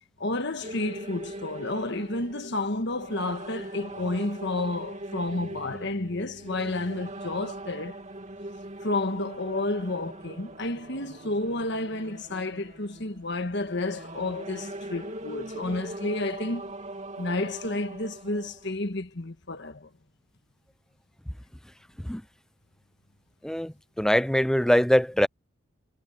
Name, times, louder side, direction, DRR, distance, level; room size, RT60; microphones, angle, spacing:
voice 1, 0.2-8.0 8.8-16.7 17.2-19.9, left 2 dB, 55° left, 1.4 m, -31 dB
sound 1, 0.6-18.7, right 1 dB, 35° right, 2.3 m, -41 dB
voice 2, 23.4-25.3, equal, 5° left, 0.4 m, -23 dB
head